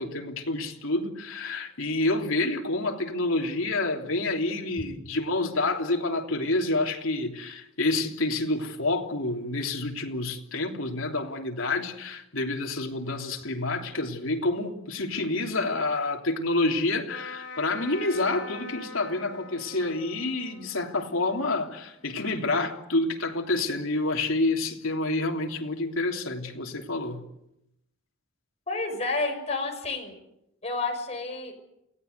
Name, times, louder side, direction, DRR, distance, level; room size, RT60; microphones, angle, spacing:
voice 1, 0.0-27.2, left 2 dB, 75° left, 3.2 m, -28 dB
Trumpet, 17.1-22.6, left 2 dB, 55° left, 6.0 m, -44 dB
voice 2, 28.7-30.2 30.6-31.5, left 3 dB, 30° left, 6.0 m, -30 dB
28.5 x 18.0 x 8.2 m
head